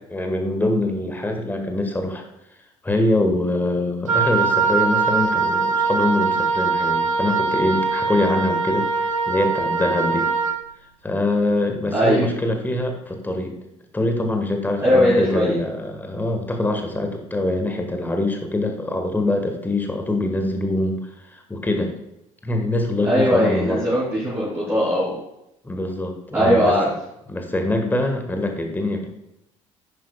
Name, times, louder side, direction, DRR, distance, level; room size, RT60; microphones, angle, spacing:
voice 1, 0.1-2.2 2.8-10.3 11.0-13.5 13.9-21.0 21.3-21.9 22.4-23.8 25.6-26.7 27.3-29.1, left 1 dB, 10° left, 4 dB, 1.5 m, -24 dB
Wind instrument woodwind instrument, 4.1-10.6, right 4 dB, 80° right, 0.6 m, -22 dB
voice 2, 11.9-12.3 14.8-15.5 23.0-25.2 26.3-26.9, equal, 15° right, -9 dB, 3.1 m, -19 dB
10.0 x 8.7 x 2.3 m, 0.83 s
figure-of-eight pair, 60°, 17 cm